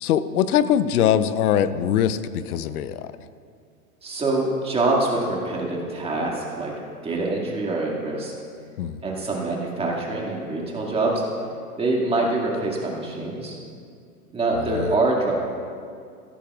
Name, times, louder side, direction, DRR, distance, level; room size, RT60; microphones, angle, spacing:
voice 1, 0.0-3.1 8.8-9.0 14.7-14.9, left 9 dB, 70° left, 13 dB, 0.7 m, -22 dB
voice 2, 4.0-6.7 7.0-8.3 9.0-11.2 11.8-13.6 14.3-15.3, right 2 dB, 15° right, -2 dB, 2.1 m, -25 dB
15.5 x 13.5 x 2.4 m, 2.3 s
hypercardioid pair, 125°, 45 cm